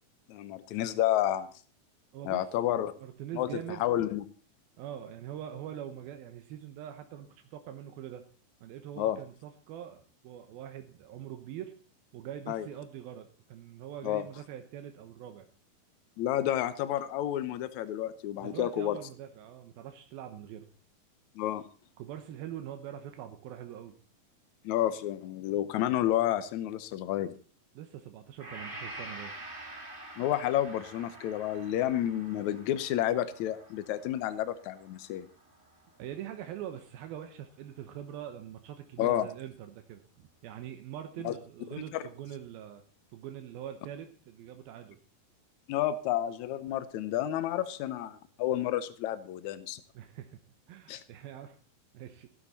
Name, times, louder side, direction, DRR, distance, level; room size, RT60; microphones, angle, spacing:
voice 1, 0.3-1.5 2.3-2.9 3.3-3.5 3.8-4.2 9.0-9.2 12.5-12.7 14.0-14.3 16.2-19.0 21.4-21.6 24.6-27.3 30.2-35.3 39.0-39.3 41.2-41.3 41.9-42.0 45.7-49.8 50.9-51.0, left 12 dB, 70° left, 13 dB, 1.9 m, -30 dB
voice 2, 2.1-3.8 4.8-8.2 8.6-11.7 12.1-15.5 18.4-20.7 22.0-23.9 27.8-29.3 36.0-42.8 43.1-45.0 47.5-47.6 49.9-50.4 50.7-51.6 51.9-52.3, right 10 dB, 85° right, 7 dB, 2.9 m, -43 dB
Gong, 28.4-36.4, right 1 dB, 20° right, 1.7 m, -47 dB
16.0 x 11.5 x 4.2 m, 0.39 s
omnidirectional pair, 4.2 m